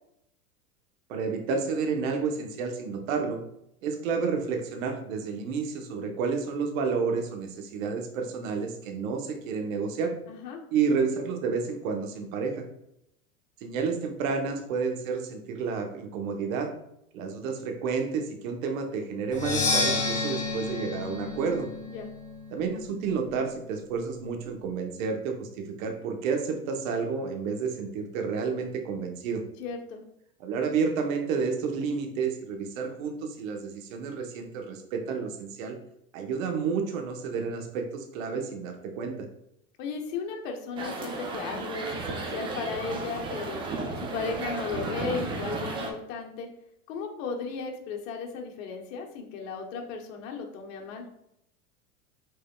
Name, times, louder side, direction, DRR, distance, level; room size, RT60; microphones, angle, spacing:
voice 1, 1.1-3.4 3.8-10.1 10.7-12.6 13.6-16.7 17.1-21.7 22.5-25.5 25.8-29.4 30.4-35.7 36.1-39.2, right 5 dB, 60° right, 4 dB, 1.0 m, -30 dB
voice 2, 10.3-10.6 21.9-22.1 29.6-30.0 39.8-43.6 44.0-46.5 46.9-51.1, left 5 dB, 60° left, 2 dB, 1.1 m, -35 dB
Percussion, 19.3-23.1, left 3 dB, 15° left, 1.1 m, -30 dB
sound 1, 40.8-45.9, right 3 dB, 15° right, 0.3 m, -34 dB
5.4 x 3.7 x 2.3 m, 0.79 s
hypercardioid pair, 95°, 45 cm